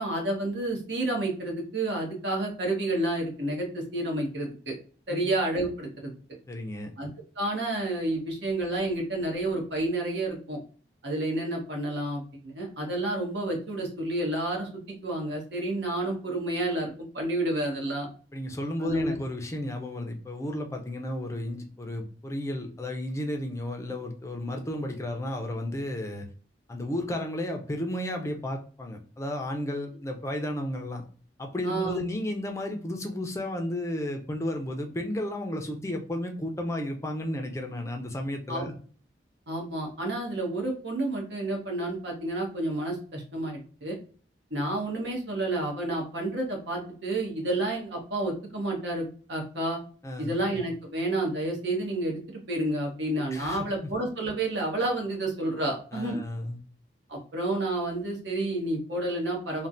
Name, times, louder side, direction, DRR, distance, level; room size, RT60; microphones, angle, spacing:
voice 1, 0.0-4.7 5.1-6.1 7.0-7.1 7.4-10.6 11.0-14.7 15.0-18.1 18.8-19.1 31.6-32.0 38.5-38.7 39.5-44.0 44.5-49.8 50.2-56.2 57.1-59.7, right 1 dB, 80° right, 0 dB, 1.1 m, -30 dB
voice 2, 6.5-6.9 18.3-26.3 26.7-31.0 31.4-38.7 50.0-50.4 53.3-53.9 55.9-56.6, left 1 dB, 15° left, 3 dB, 0.4 m, -33 dB
3.2 x 2.1 x 2.5 m, 0.42 s
head